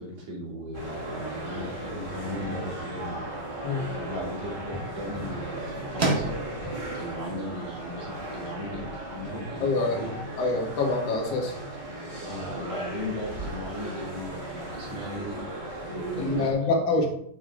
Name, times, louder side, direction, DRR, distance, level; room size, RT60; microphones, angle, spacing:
voice 1, 0.0-3.2 4.0-6.5 6.9-10.2 10.5-10.6 12.3-15.4 16.2-17.1, left 1 dB, 75° right, -4 dB, 4.7 m, -37 dB
sound 1, 0.7-16.5, right 1 dB, 15° right, 2.4 m, -36 dB
sound 2, 8.1-13.7, right 2 dB, 30° right, 1.2 m, -38 dB
voice 2, 9.6-10.0 10.4-11.5 16.1-17.1, left 3 dB, 55° left, 0 dB, 2.9 m, -25 dB
9.6 x 7.1 x 3.9 m, 0.68 s
omnidirectional pair, 3.4 m